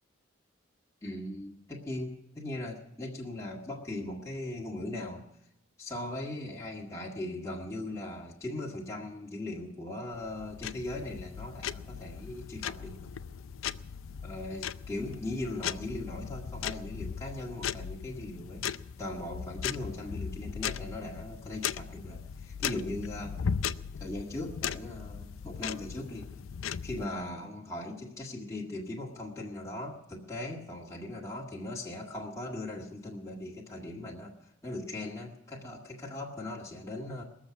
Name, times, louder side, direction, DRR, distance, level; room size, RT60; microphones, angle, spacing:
voice 1, 1.0-5.3 5.8-13.1 14.2-18.7 19.0-23.4 24.0-26.3 26.8-37.2, left 1 dB, 15° left, -4 dB, 1.8 m, -39 dB
sound 1, 10.1-27.1, left 7 dB, 85° left, 0.5 m, -38 dB
20.5 x 7.3 x 9.4 m, 0.83 s
head